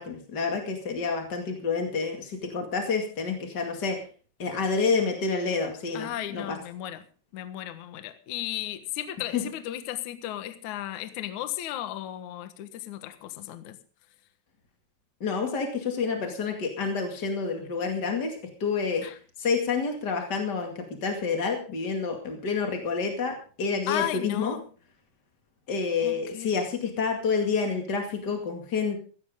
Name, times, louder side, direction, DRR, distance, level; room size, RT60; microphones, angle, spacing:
voice 1, 0.0-4.0 4.4-6.6 9.3-9.4 15.2-19.0 19.4-24.5 25.7-29.0, left 5 dB, 45° left, 1.3 m, -28 dB
voice 2, 5.9-7.0 7.3-13.8 19.0-19.1 23.9-24.6 26.0-26.6, left 13 dB, 90° left, 1.7 m, -35 dB
16.0 x 16.0 x 3.7 m
omnidirectional pair, 5.8 m